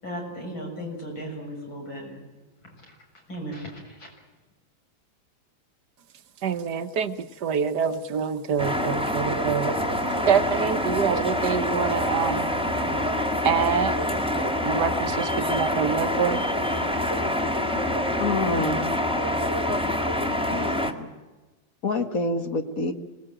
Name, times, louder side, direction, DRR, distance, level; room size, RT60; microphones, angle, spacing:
voice 1, 0.0-2.2 2.9-3.0 3.3-4.1, equal, 80° left, 8.0 m, -36 dB
voice 2, 6.4-9.8 10.3-12.5 13.4-14.0 14.6-16.4, right 7 dB, 60° right, 1.5 m, -26 dB
sound 1, 8.6-20.9, left 1 dB, 5° right, 1.8 m, -26 dB
voice 3, 18.2-18.9 20.5-21.1 21.8-22.9, left 3 dB, 45° left, 2.0 m, -27 dB
26.5 x 20.0 x 9.0 m
omnidirectional pair, 2.1 m